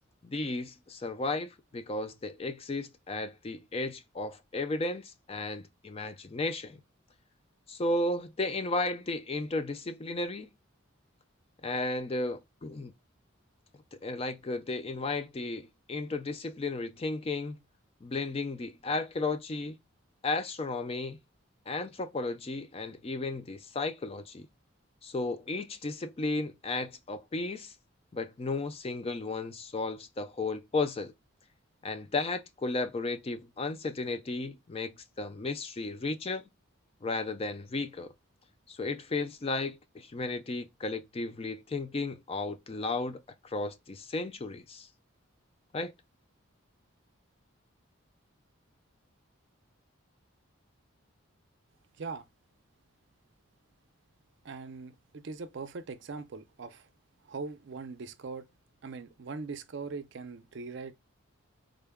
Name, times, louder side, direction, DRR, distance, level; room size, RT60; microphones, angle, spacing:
voice 1, 0.2-6.8 7.7-10.5 11.6-12.9 14.0-17.6 18.0-19.8 20.2-21.2 21.7-24.5 25.0-27.7 28.1-31.1 31.8-36.4 37.0-38.1 38.7-44.9 45.7-45.9, left 2 dB, 25° left, 0.3 m, -34 dB
voice 2, 54.4-56.9 57.2-58.5 58.8-60.9, right 4 dB, 55° right, 0.4 m, -41 dB
3.7 x 2.1 x 3.4 m
head